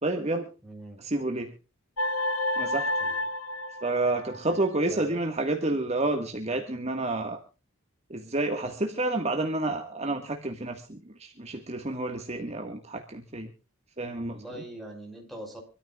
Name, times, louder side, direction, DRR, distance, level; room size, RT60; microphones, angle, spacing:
voice 1, 0.0-0.5 1.0-1.5 2.6-2.9 3.8-7.4 8.1-13.5 14.0-14.6, right 2 dB, 30° right, 4 dB, 1.7 m, -29 dB
voice 2, 0.6-1.0 3.0-3.2 4.9-5.2 14.3-15.6, right 1 dB, ahead, 2 dB, 5.5 m, -42 dB
sound 1, 2.0-4.6, left 1 dB, 85° left, 1.3 m, -30 dB
26.5 x 13.5 x 2.4 m, 0.32 s
head